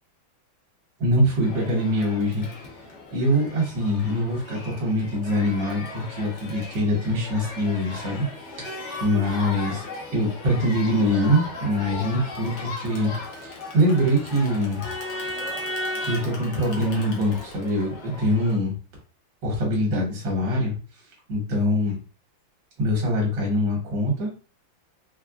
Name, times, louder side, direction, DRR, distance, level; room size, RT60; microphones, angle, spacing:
voice 1, 1.0-2.5 3.1-8.3 8.6-9.8 10.1-13.1 13.7-14.8 16.0-18.7 19.4-20.7 21.3-21.9 22.8-24.3, equal, 65° right, -1 dB, 1.8 m, -23 dB
Crowd, 1.4-18.5, left 2 dB, 65° left, 0.7 m, -36 dB
4.1 x 2.2 x 2.4 m, 0.38 s
omnidirectional pair, 2.2 m